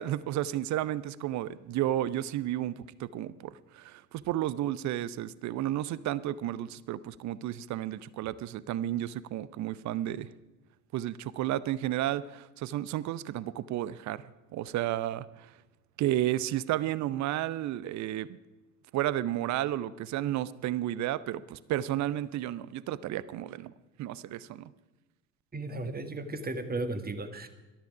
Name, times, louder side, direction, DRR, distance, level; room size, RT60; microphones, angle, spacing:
voice 1, 0.0-10.3 10.9-14.2 14.5-15.5 16.0-18.4 18.9-23.7 24.0-24.7, right 13 dB, 40° right, 18 dB, 0.7 m, -32 dB
voice 2, 25.5-27.5, right 2 dB, 20° right, 9 dB, 1.7 m, -35 dB
18.0 x 13.0 x 4.8 m, 1.1 s
figure-of-eight pair, 55°, 44 cm